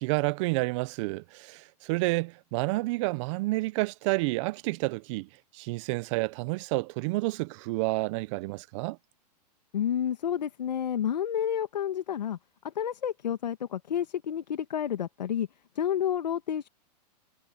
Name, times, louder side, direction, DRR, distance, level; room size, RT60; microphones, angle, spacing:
voice 1, 0.0-9.0, right 23 dB, 45° right, 1.0 m, -30 dB
voice 2, 9.7-12.4 12.6-15.5 15.8-16.7, left 9 dB, 80° left, 1.7 m, -30 dB
hypercardioid pair, 125°, 21 cm